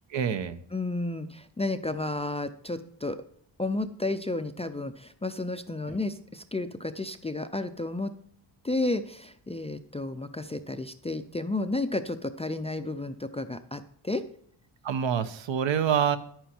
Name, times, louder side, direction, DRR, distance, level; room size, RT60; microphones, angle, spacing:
voice 1, 0.1-0.6 14.8-16.2, right 8 dB, 70° right, 11 dB, 1.0 m, -26 dB
voice 2, 0.7-3.2 3.6-8.1 8.6-14.2, left 2 dB, 15° left, 10 dB, 0.4 m, -32 dB
10.5 x 9.2 x 4.5 m, 0.63 s
wide cardioid pair, 140°, 47 cm